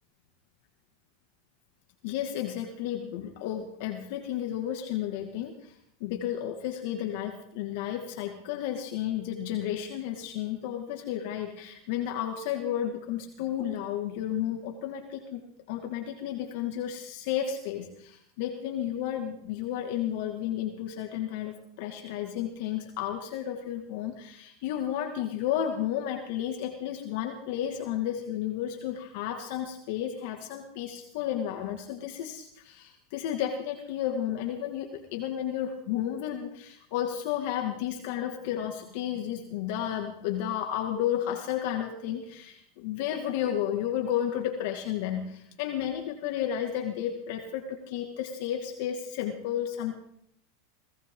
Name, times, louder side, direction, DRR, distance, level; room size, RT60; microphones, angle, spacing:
voice 1, 2.0-5.7 6.0-15.4 15.7-49.9, left 10 dB, 65° left, 3 dB, 2.2 m, -32 dB
20.5 x 17.5 x 3.9 m, 0.71 s
supercardioid pair, 125°, 0 cm